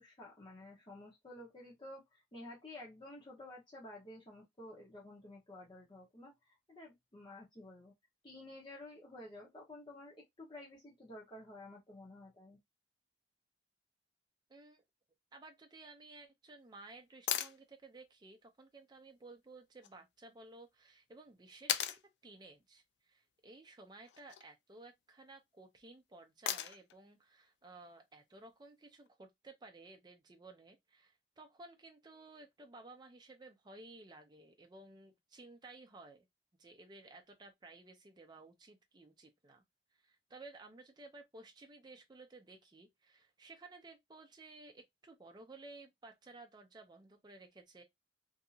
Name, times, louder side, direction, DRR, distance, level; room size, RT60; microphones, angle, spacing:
voice 1, 0.0-7.9 8.2-12.6, left 1 dB, 25° left, 0.8 m, -52 dB
voice 2, 14.5-14.8 15.3-36.3 36.6-39.6 40.0-47.8, right 2 dB, 25° right, 0.5 m, -56 dB
sound 1, 17.3-17.6 19.8-19.9 21.7-22.0 24.0-24.5 26.5-26.9 29.1-29.2, left 11 dB, 70° left, 0.3 m, -36 dB
2.7 x 2.6 x 2.4 m
head